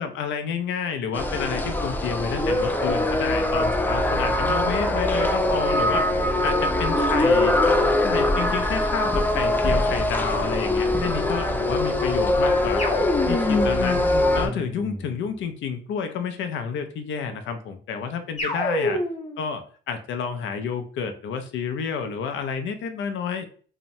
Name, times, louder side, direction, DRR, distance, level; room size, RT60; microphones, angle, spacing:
voice 1, 0.0-6.1 6.4-7.6 8.0-12.8 13.3-14.0 14.3-19.0 19.4-23.5, left 6 dB, 70° left, 7 dB, 0.5 m, -30 dB
sound 1, 1.1-14.5, left 1 dB, 10° left, 0.3 m, -22 dB
sound 2, 12.8-15.3 18.4-19.4, left 2 dB, 35° left, 0.8 m, -27 dB
2.8 x 2.1 x 2.6 m, 0.43 s
cardioid pair, 90°, 20 cm